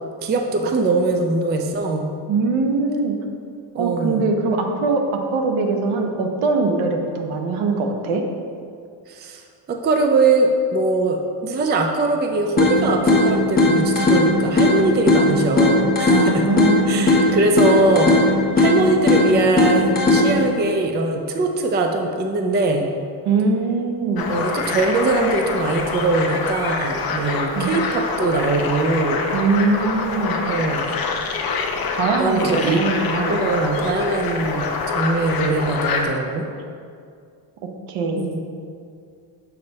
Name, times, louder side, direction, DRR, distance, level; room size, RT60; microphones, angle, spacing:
voice 1, 0.2-2.1 3.7-4.3 9.1-16.4 16.9-22.9 24.3-29.2 30.5-30.9 32.2-32.8 33.3-36.5 38.2-38.4, right 2 dB, 20° right, 4 dB, 0.4 m, -21 dB
voice 2, 2.3-3.2 3.8-5.0 5.3-8.2 16.1-17.2 23.2-24.3 27.5-27.7 29.3-30.5 32.0-33.4 37.9-38.4, right 4 dB, 75° right, 3 dB, 1.0 m, -22 dB
sound 1, 12.6-20.6, left 2 dB, 20° left, 1.3 m, -18 dB
sound 2, 24.2-36.0, left 4 dB, 45° left, 0.8 m, -26 dB
6.7 x 4.1 x 5.3 m, 2.3 s
cardioid pair, 135°, 49 cm